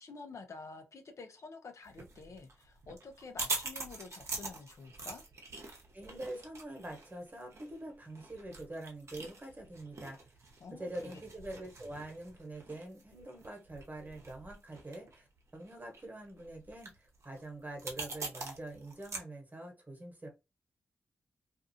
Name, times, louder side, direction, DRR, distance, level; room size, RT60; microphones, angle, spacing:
voice 1, 0.0-5.2 10.6-11.2, left 4 dB, 60° left, 0.6 m, -49 dB
sound 1, 1.9-19.2, right 3 dB, 55° right, 0.8 m, -44 dB
voice 2, 5.9-10.2 10.7-15.3 15.5-20.3, right 1 dB, 30° right, 1.2 m, -45 dB
2.6 x 2.4 x 2.7 m
supercardioid pair, 40°, 6 cm